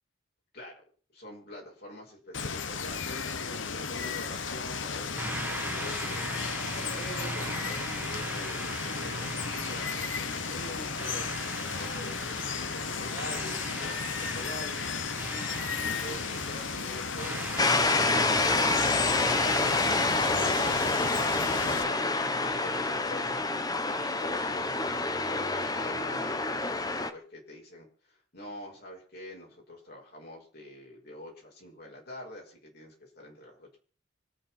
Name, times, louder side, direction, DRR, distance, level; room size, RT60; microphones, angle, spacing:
voice 1, 1.1-11.3 11.8-14.8 15.3-18.1 19.0-23.4 23.8-33.8, left 1 dB, 50° left, -1 dB, 5.9 m, -45 dB
Water, 2.3-21.8, left 5 dB, 75° left, 1.1 m, -34 dB
sound 1, 5.1-23.4, right 2 dB, 10° right, 1.4 m, -40 dB
sound 2, 17.6-27.1, left 3 dB, 20° left, 1.0 m, -27 dB
25.5 x 9.0 x 4.4 m, 0.42 s
head